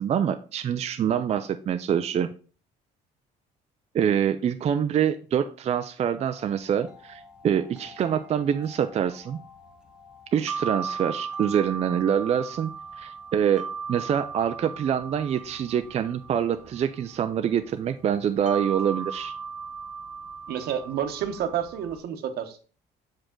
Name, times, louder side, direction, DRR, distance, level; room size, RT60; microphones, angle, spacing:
voice 1, 0.0-2.3 3.9-9.4 10.3-19.3, right 8 dB, 40° right, 8 dB, 0.4 m, -25 dB
sound 1, 6.2-22.0, right 5 dB, 5° right, 0.9 m, -38 dB
voice 2, 20.5-22.6, right 9 dB, 70° right, 8 dB, 1.0 m, -29 dB
6.2 x 5.0 x 3.8 m, 0.38 s
cardioid pair, 110°, 17 cm